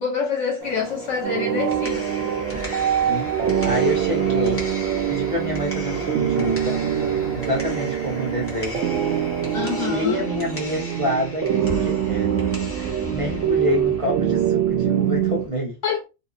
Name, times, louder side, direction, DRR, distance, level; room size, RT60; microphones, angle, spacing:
voice 1, 0.0-2.3 9.5-10.2 15.8-16.0, left 6 dB, 65° left, 0.9 m, -26 dB
Engine, 0.6-9.9, right 4 dB, 85° right, 1.1 m, -39 dB
sound 1, 1.2-15.4, right 10 dB, 70° right, 0.8 m, -24 dB
sound 2, 1.5-15.5, left 1 dB, 15° left, 0.5 m, -36 dB
voice 2, 2.5-4.7 5.1-6.8 7.3-8.8 9.8-12.3 12.7-15.8, left 1 dB, 40° right, 0.5 m, -28 dB
2.8 x 2.1 x 2.4 m
omnidirectional pair, 1.5 m